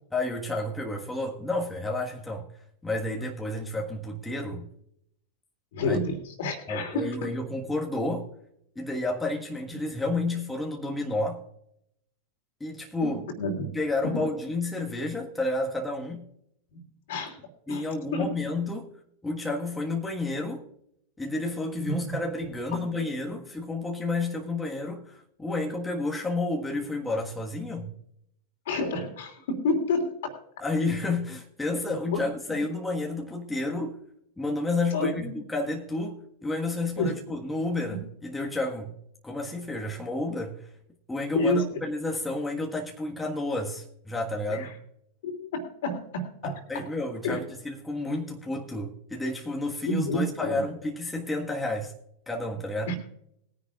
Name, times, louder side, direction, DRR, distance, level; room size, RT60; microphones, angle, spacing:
voice 1, 0.1-2.5 2.8-4.7 5.8-6.0 6.7-8.3 8.7-11.4 12.6-13.2 13.7-16.3 17.7-18.9 19.2-20.6 21.2-27.9 30.6-34.0 34.4-35.2 35.5-38.9 39.2-40.7 41.1-44.7 46.4-51.9 52.3-52.9, left 2 dB, 10° left, 1.6 m, -31 dB
voice 2, 5.7-7.3 13.0-13.7 14.0-14.3 16.7-17.4 17.7-17.9 18.1-18.3 21.8-22.2 22.7-22.8 28.6-30.4 32.1-32.2 32.5-32.6 34.9-35.3 37.0-37.2 37.9-38.0 41.3-41.7 44.5-44.7 45.2-46.8 47.2-47.4 49.9-50.6 52.9-53.0, left 2 dB, 55° left, 2.8 m, -29 dB
21.0 x 10.0 x 2.5 m
figure-of-eight pair, 90°, 0 cm